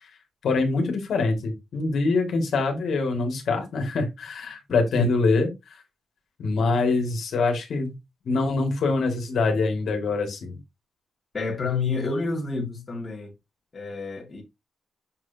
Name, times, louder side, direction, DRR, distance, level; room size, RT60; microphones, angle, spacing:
voice 1, 0.4-5.8 6.4-7.9 8.3-10.6, left 3 dB, 60° left, 2.1 m, -24 dB
voice 2, 4.7-5.1 11.3-13.3 13.7-14.4, left 4 dB, 25° left, 2.1 m, -29 dB
7.0 x 6.3 x 2.8 m
wide cardioid pair, 170°, 0 cm